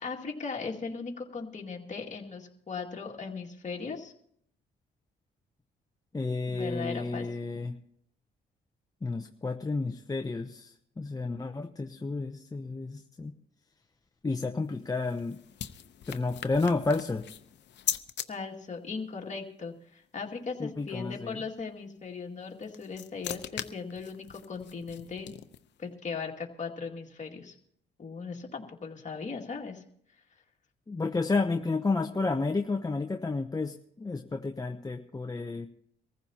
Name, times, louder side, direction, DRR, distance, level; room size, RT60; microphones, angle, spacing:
voice 1, 0.0-4.1 6.5-7.3 18.3-25.3 25.8-27.5 28.0-29.8, left 5 dB, 35° left, 1 dB, 2.3 m, -38 dB
voice 2, 6.1-7.7 9.0-13.3 14.2-15.4 16.1-17.2 20.6-21.4 30.9-35.7, left 3 dB, 20° left, 4 dB, 0.8 m, -31 dB
sound 1, 14.6-18.3 22.4-25.8, left 10 dB, 60° left, 0.8 m, -40 dB
24.0 x 15.0 x 2.9 m, 0.68 s
cardioid pair, 90°, 20 cm